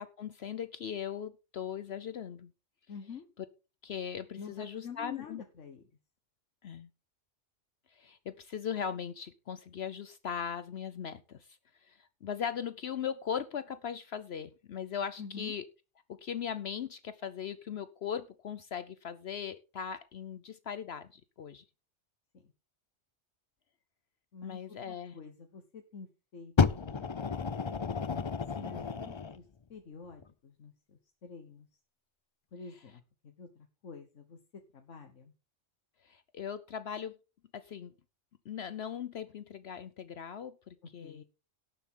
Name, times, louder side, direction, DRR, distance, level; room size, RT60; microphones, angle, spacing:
voice 1, 0.0-2.5 3.8-5.4 6.6-6.9 7.9-11.5 11.8-15.6 16.1-21.6 24.4-25.2 36.0-37.1 37.5-37.9 38.5-41.2, left 8 dB, 60° left, 13 dB, 0.9 m, -39 dB
voice 2, 2.9-3.3 4.4-5.8 15.2-15.5 22.4-22.5 24.3-27.3 28.5-29.4 29.7-31.7 32.5-35.3 41.0-41.2, left 5 dB, 85° left, 4 dB, 1.6 m, -48 dB
Fire, 26.6-29.4 30.2-30.3, left 5 dB, 40° left, 0.4 m, -31 dB
18.0 x 7.1 x 3.8 m, 0.31 s
omnidirectional pair, 1.2 m